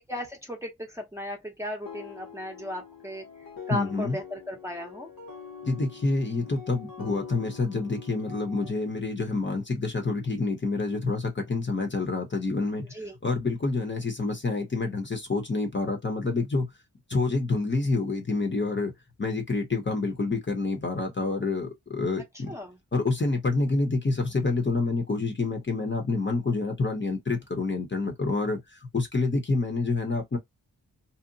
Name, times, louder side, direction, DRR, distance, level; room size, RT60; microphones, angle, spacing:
voice 1, 0.1-3.2 3.7-5.1 12.9-13.2 22.5-22.8, left 1 dB, 10° right, 0.6 m, -36 dB
sound 1, 1.9-8.7, left 6 dB, 70° left, 1.0 m, -44 dB
voice 2, 3.7-4.2 5.6-12.9 13.2-16.7 17.1-18.9 19.2-22.5 22.9-30.4, left 3 dB, 35° left, 0.7 m, -27 dB
2.8 x 2.0 x 2.6 m
wide cardioid pair, 120°, 35 cm